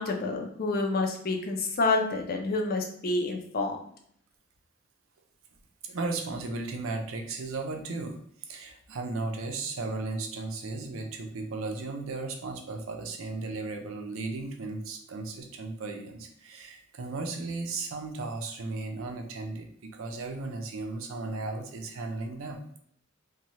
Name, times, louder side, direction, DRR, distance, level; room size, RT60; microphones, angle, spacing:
voice 1, 0.0-3.8, left 3 dB, 50° left, 3 dB, 0.5 m, -28 dB
voice 2, 5.8-22.8, right 3 dB, 85° right, 4 dB, 0.5 m, -35 dB
2.8 x 2.3 x 3.0 m, 0.67 s
head